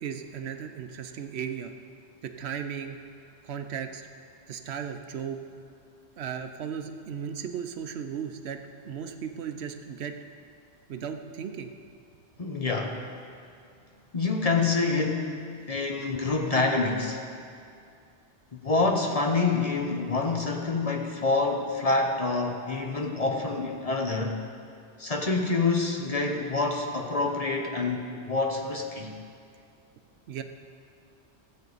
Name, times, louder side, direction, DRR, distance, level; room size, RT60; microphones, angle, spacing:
voice 1, 0.0-1.7 2.2-3.0 3.4-4.1 4.5-5.4 6.2-8.6 8.8-10.1 10.9-11.7 30.3-30.4, right 7 dB, 75° right, 7 dB, 0.9 m, -36 dB
voice 2, 12.4-13.1 14.1-17.2 18.5-24.4 25.0-29.2, left 3 dB, 35° left, 1 dB, 0.9 m, -27 dB
15.5 x 7.9 x 4.0 m, 2.4 s
omnidirectional pair, 1.1 m